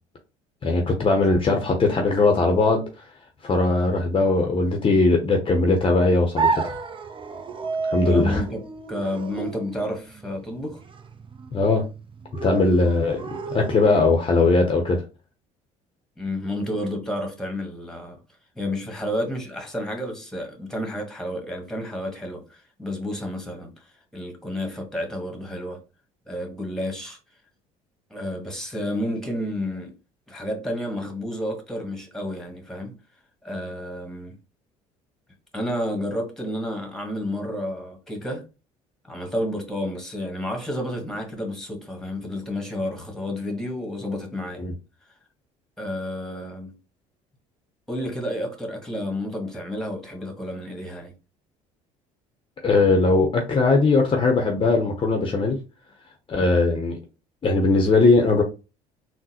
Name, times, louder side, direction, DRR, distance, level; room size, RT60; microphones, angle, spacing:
voice 1, 0.6-3.1 3.4-6.7 7.9-8.4 11.5-11.8 12.4-15.0 44.6-44.7 52.6-55.6 56.3-57.0 57.4-58.4, left 3 dB, 30° left, 0.7 m, -20 dB
sound 1, 6.4-14.3, right 4 dB, 30° right, 0.6 m, -31 dB
voice 2, 8.0-8.6 8.9-10.8 16.2-18.2 18.5-25.8 26.3-27.2 28.1-29.9 30.3-32.9 33.4-34.3 35.5-38.4 39.0-44.6 45.8-46.7 47.9-51.1, left 1 dB, 5° left, 1.4 m, -30 dB
3.7 x 2.1 x 2.9 m
hypercardioid pair, 65°, 17 cm